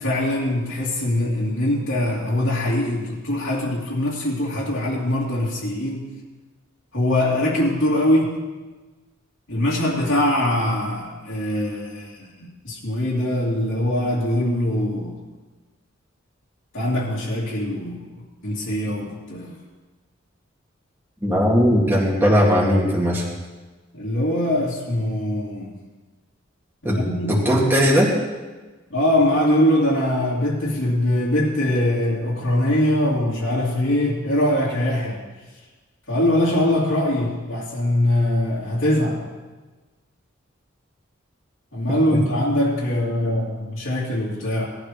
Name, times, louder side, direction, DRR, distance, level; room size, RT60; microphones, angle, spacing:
voice 1, 0.0-6.1 6.9-8.4 9.5-12.3 12.6-15.1 16.7-19.5 23.9-25.7 26.8-27.4 28.9-35.2 36.1-39.3 41.7-44.6, left 1 dB, 90° left, -7 dB, 2.6 m, -22 dB
voice 2, 21.2-23.2 26.8-28.1 42.1-42.2, equal, 10° right, -5 dB, 2.0 m, -18 dB
18.5 x 12.0 x 3.1 m, 1.3 s
head